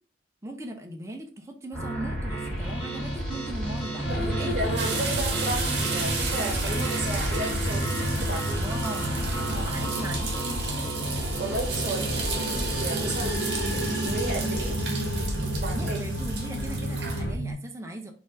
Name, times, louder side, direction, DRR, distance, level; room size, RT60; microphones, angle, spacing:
voice 1, 0.4-4.6 8.6-10.9 15.7-18.1, right 1 dB, 15° right, 3 dB, 0.5 m, -38 dB
sound 1, 1.7-17.5, right 1 dB, 5° left, 1.8 m, -31 dB
sound 2, 4.0-17.3, left 1 dB, 55° left, 1.1 m, -34 dB
voice 2, 4.1-8.6 11.4-14.8 15.3-16.0, right 1 dB, 45° right, 1 dB, 1.3 m, -34 dB
sound 3, 4.8-17.2, right 5 dB, 60° right, 1.0 m, -34 dB
4.2 x 2.5 x 3.8 m, 0.40 s
head